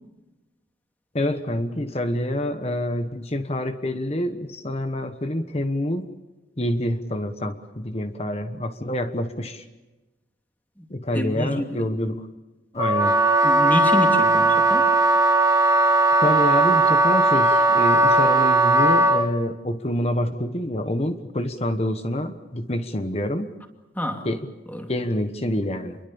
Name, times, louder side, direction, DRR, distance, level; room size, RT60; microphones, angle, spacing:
voice 1, 1.1-6.1 6.6-9.6 10.9-12.2 12.7-13.2 16.2-23.5 24.2-24.4 24.9-26.0, left 1 dB, 35° left, 8 dB, 1.2 m, -27 dB
voice 2, 11.1-11.9 13.4-14.9 24.0-24.3 24.7-24.9, equal, 10° left, 4 dB, 2.5 m, -28 dB
Wind instrument woodwind instrument, 12.8-19.3, right 2 dB, 15° right, 1.5 m, -18 dB
28.5 x 22.5 x 7.1 m, 1.1 s
head